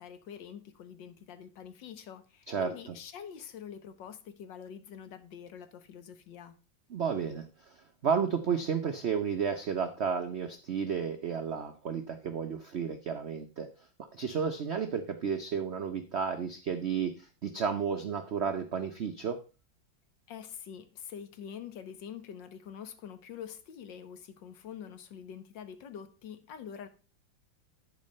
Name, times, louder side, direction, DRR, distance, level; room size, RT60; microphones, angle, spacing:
voice 1, 0.0-6.6 20.3-26.9, left 8 dB, 70° left, 1.6 m, -45 dB
voice 2, 6.9-13.7 14.1-19.4, right 6 dB, 65° right, 0.6 m, -32 dB
10.5 x 4.8 x 5.3 m
omnidirectional pair, 2.1 m